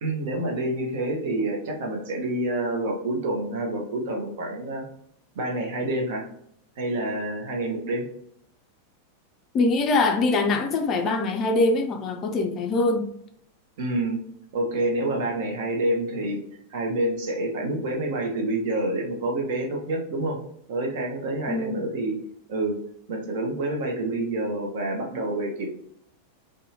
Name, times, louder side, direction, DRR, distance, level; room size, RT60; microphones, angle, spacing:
voice 1, 0.0-4.8 5.3-6.3 6.8-8.1 13.8-14.2 14.5-16.4 16.7-20.4 20.7-22.2 22.5-22.8 23.1-25.7, right 1 dB, 55° right, 0.7 m, -27 dB
voice 2, 9.5-13.1 21.5-21.8, left 3 dB, 30° left, 0.4 m, -23 dB
2.7 x 2.2 x 2.8 m
figure-of-eight pair, 90°, 0 cm